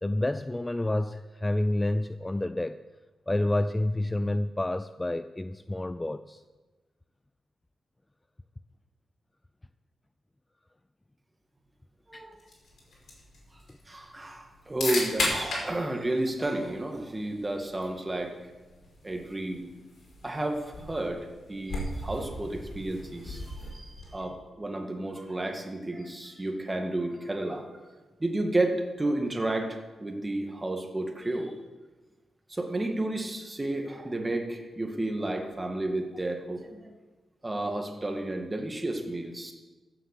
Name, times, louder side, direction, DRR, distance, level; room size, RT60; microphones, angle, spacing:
voice 1, 0.0-2.8 3.3-6.4 12.1-12.3, left 1 dB, 15° left, 12 dB, 0.4 m, -29 dB
sound 1, 12.4-24.3, left 2 dB, 65° left, 5.1 m, -38 dB
voice 2, 13.9-18.3 19.0-19.7 20.2-27.6 28.2-31.5 32.5-36.9 37.4-39.5, right 2 dB, 20° right, 3 dB, 2.0 m, -32 dB
15.0 x 8.0 x 6.7 m, 1.2 s
cardioid pair, 100°, 0 cm